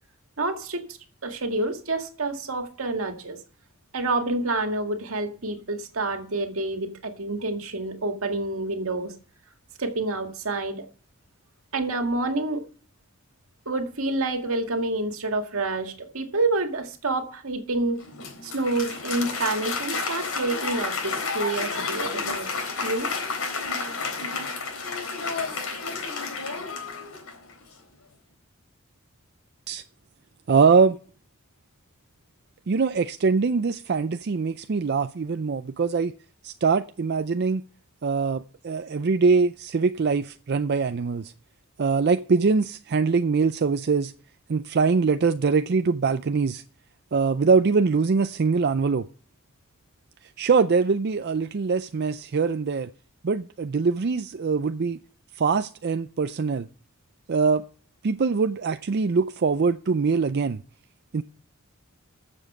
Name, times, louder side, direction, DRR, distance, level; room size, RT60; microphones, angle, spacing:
voice 1, 0.4-0.8 1.2-3.4 3.9-9.1 9.8-10.8 11.7-12.6 13.7-18.0 18.4-22.5 22.8-23.1, right 2 dB, 80° right, 2.0 m, -28 dB
Applause, 18.0-27.5, left 4 dB, 90° left, 3.6 m, -31 dB
voice 2, 30.5-31.0 32.7-36.1 36.4-37.6 38.0-41.3 41.8-44.1 44.5-46.6 47.1-49.1 50.4-52.9 53.2-55.0 55.4-56.7 57.3-57.6 58.0-60.6 61.1-61.2, right 5 dB, 50° right, 0.4 m, -23 dB
14.0 x 7.3 x 5.5 m
head